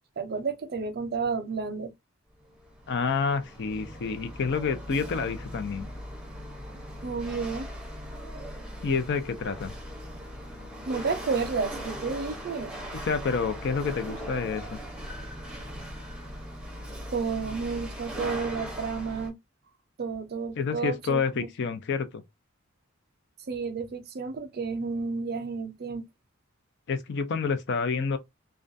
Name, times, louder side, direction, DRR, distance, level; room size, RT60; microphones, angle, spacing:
voice 1, 0.2-1.9 7.0-7.7 10.9-12.7 17.1-19.3 20.0-21.5 23.5-26.1, right 5 dB, 50° right, 0.5 m, -31 dB
Chatter / Hiss / Rattle, 2.4-19.3, equal, 5° right, 0.7 m, -39 dB
voice 2, 2.9-5.9 8.8-9.7 13.0-14.8 20.6-22.2 26.9-28.2, left 5 dB, 55° left, 0.4 m, -28 dB
2.4 x 2.2 x 2.5 m
head